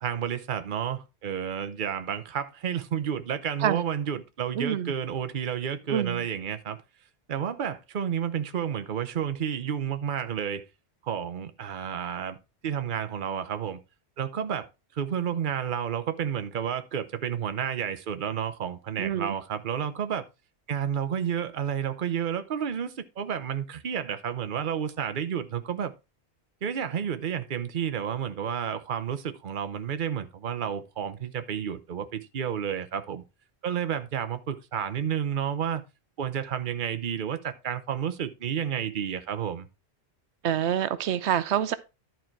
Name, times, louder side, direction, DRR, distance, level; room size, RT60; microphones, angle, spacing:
voice 1, 0.0-6.8 7.3-10.6 11.0-12.4 12.6-13.8 14.2-14.7 14.9-20.2 20.7-25.9 26.6-33.2 33.6-35.8 36.2-39.7, right 8 dB, 50° right, 0.9 m, -31 dB
voice 2, 4.5-4.9 5.9-6.2 19.0-19.4 40.4-41.7, right 10 dB, 90° right, 0.9 m, -26 dB
11.5 x 4.6 x 4.5 m
omnidirectional pair, 1.1 m